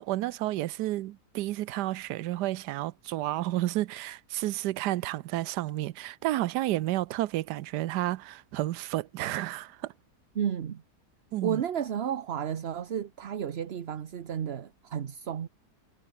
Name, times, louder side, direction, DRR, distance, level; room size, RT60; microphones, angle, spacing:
voice 1, 0.0-9.9 11.3-11.6, right 15 dB, 85° right, 1.2 m, -31 dB
voice 2, 10.3-10.8 11.4-15.5, right 8 dB, 45° right, 0.9 m, -32 dB
omnidirectional pair, 1.7 m